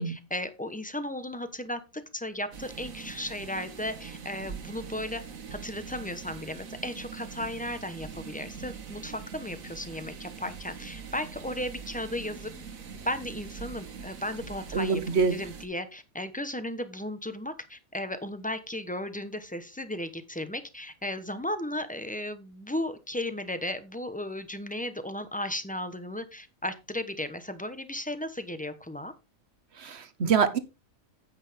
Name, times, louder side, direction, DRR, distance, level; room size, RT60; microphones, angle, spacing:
voice 1, 0.0-5.2 5.5-12.5 13.0-29.1, left 1 dB, 5° left, 11 dB, 0.8 m, -35 dB
sound 1, 2.5-15.7, right 6 dB, 75° right, 1.7 m, -43 dB
voice 2, 14.7-15.3 29.8-30.6, right 6 dB, 55° right, 12 dB, 1.2 m, -25 dB
9.7 x 8.8 x 3.5 m, 0.27 s
omnidirectional pair, 1.4 m